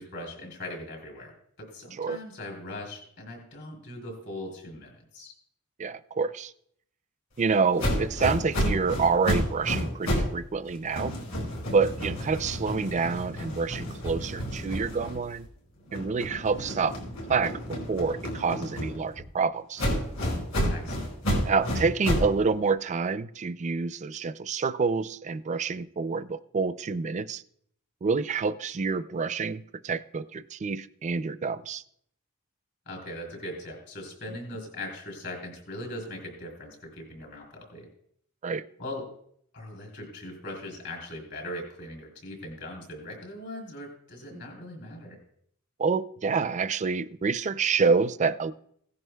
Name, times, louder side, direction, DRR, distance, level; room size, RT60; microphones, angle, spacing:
voice 1, 0.0-1.3 1.6-5.3 20.7-21.0 32.8-37.9 38.8-39.1 39.5-45.2, left 1 dB, 60° left, 1 dB, 3.4 m, -40 dB
voice 2, 5.8-6.5 7.4-11.2 11.7-15.5 15.9-17.0 17.3-17.5 17.9-19.8 21.5-27.4 28.0-31.8 38.4-38.6 44.3-44.4 45.8-48.5, right 5 dB, 35° right, 14 dB, 0.4 m, -27 dB
sound 1, 7.8-10.4 10.7-15.5 15.9-19.2 19.8-22.4, equal, 75° left, 5.1 m, -30 dB
17.0 x 11.0 x 2.3 m, 0.68 s
head